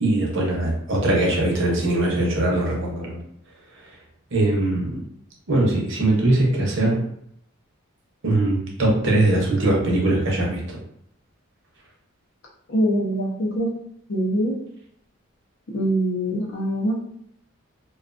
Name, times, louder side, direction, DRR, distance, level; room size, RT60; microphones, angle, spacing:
voice 1, 0.0-3.2 4.3-5.0 5.5-7.0 8.2-10.8, right 2 dB, 55° right, -2 dB, 0.7 m, -21 dB
voice 2, 12.7-13.7 14.1-14.5 15.7-17.0, equal, 60° left, -2 dB, 0.6 m, -23 dB
2.4 x 2.3 x 2.4 m, 0.70 s
head